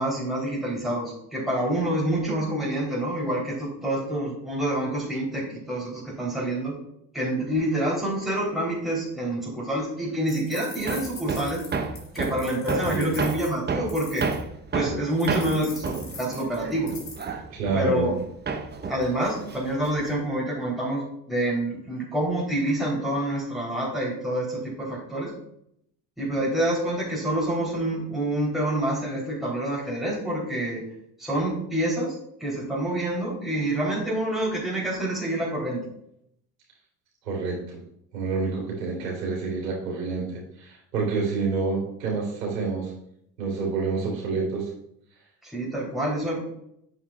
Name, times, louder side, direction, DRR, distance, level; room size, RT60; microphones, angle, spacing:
voice 1, 0.0-6.7 7.1-11.6 12.1-14.3 14.7-16.9 17.7-18.2 18.9-25.3 26.2-30.8 31.2-32.1 32.4-35.8 45.4-46.4, right 1 dB, ahead, -5 dB, 3.3 m, -27 dB
sound 1, 10.3-14.4 15.2-17.3, left 4 dB, 35° left, 2.9 m, -42 dB
Hammer, 10.9-18.2 18.5-20.2, right 4 dB, 20° right, 0.9 m, -31 dB
voice 2, 12.8-13.2 17.5-18.1 37.3-37.8 38.1-40.3 40.6-42.9 43.4-44.7, right 4 dB, 75° right, -3 dB, 3.4 m, -28 dB
9.6 x 7.8 x 2.4 m, 0.74 s
figure-of-eight pair, 60°, 49 cm